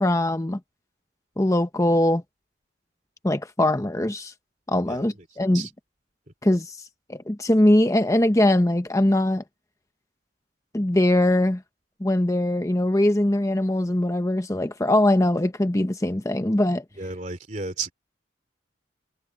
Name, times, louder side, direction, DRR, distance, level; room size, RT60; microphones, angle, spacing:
voice 1, 0.0-0.6 1.4-2.2 3.2-4.3 4.7-5.7 6.4-6.8 7.1-9.4 10.7-11.6 12.0-16.8, left 1 dB, 15° left, 0.8 m, -21 dB
voice 2, 17.0-17.9, right 4 dB, 40° right, 2.8 m, -32 dB
head